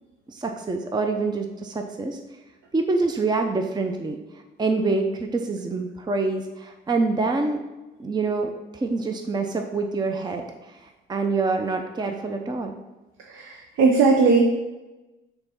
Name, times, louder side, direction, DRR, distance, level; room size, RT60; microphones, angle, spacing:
voice 1, 0.3-2.2 2.7-4.2 4.6-7.6 8.0-12.8, right 3 dB, 20° right, 4 dB, 0.5 m, -26 dB
voice 2, 13.3-14.4, right 4 dB, 90° right, 2 dB, 0.7 m, -18 dB
4.8 x 3.8 x 5.7 m, 1.1 s
cardioid pair, 90°, 20 cm